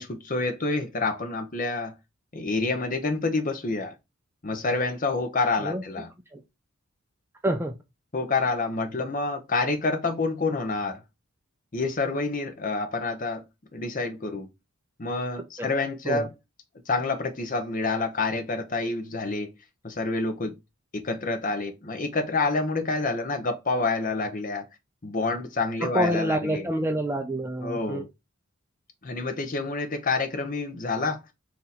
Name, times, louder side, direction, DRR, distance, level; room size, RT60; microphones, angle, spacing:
voice 1, 0.0-2.0 2.3-3.9 4.4-6.1 8.1-11.0 11.7-13.4 13.7-14.5 15.0-16.3 16.9-19.5 19.8-20.5 21.0-24.6 25.0-26.7 27.6-28.1 29.0-31.3, left 3 dB, 40° left, 0.8 m, -28 dB
voice 2, 7.4-7.7 15.6-15.7 16.1-16.3 25.8-28.0, right 1 dB, 10° right, 0.4 m, -27 dB
3.8 x 2.8 x 4.1 m
head